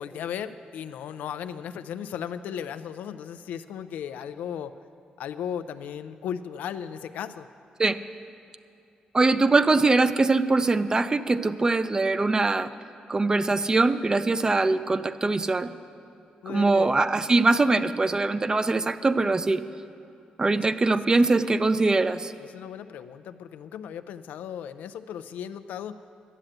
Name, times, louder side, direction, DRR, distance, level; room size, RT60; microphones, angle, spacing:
voice 1, 0.0-4.7 5.2-7.5 16.4-17.0 20.5-20.7 22.4-26.0, left 8 dB, 90° left, 11 dB, 0.4 m, -36 dB
voice 2, 9.1-12.7 13.1-15.7 16.5-19.6 20.4-22.3, right 3 dB, 25° right, 12 dB, 0.5 m, -22 dB
12.0 x 7.7 x 8.8 m, 2.6 s
cardioid pair, 90°, 3 cm